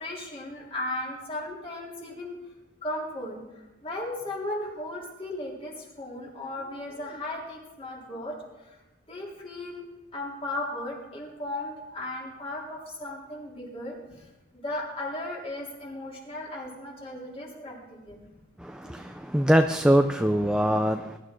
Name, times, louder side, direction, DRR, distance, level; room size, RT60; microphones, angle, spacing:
voice 1, 0.0-2.4 2.8-8.4 8.6-8.8 9.1-9.8 10.1-14.0 14.5-18.3 18.8-18.9, left 1 dB, 30° left, -3 dB, 3.5 m, -36 dB
voice 2, 18.6-21.2, equal, 5° right, 6 dB, 0.4 m, -23 dB
21.0 x 11.5 x 3.8 m, 1.1 s
head